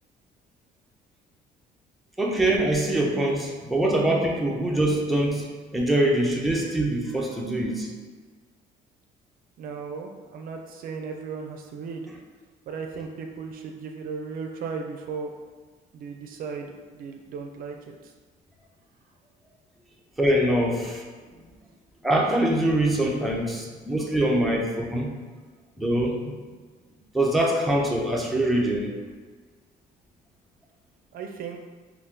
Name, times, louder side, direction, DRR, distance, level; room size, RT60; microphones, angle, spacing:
voice 1, 2.2-5.5 5.7-7.9 20.2-21.0 22.0-25.1 25.8-26.4 27.1-28.9, right 1 dB, ahead, -2 dB, 0.5 m, -23 dB
voice 2, 9.6-12.1 12.7-15.3 15.9-17.9 31.1-31.6, right 5 dB, 60° right, 3 dB, 0.4 m, -36 dB
2.6 x 2.4 x 3.5 m, 1.5 s
cardioid pair, 110°, 17 cm